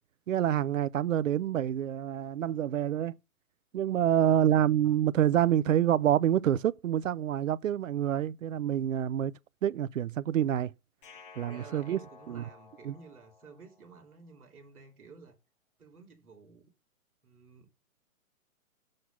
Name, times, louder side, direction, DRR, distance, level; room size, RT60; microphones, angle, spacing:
voice 1, 0.3-3.2 3.7-9.3 9.6-10.7 11.4-12.0 12.3-12.4 12.8-12.9, right 10 dB, 65° right, 0.6 m, -27 dB
voice 2, 3.9-4.4 11.3-15.4 15.8-16.7 17.2-17.7, right 4 dB, ahead, 0.5 m, -53 dB
sound 1, 11.0-14.1, left 5 dB, 40° left, 1.2 m, -54 dB
6.5 x 6.1 x 6.9 m
hypercardioid pair, 160°, 43 cm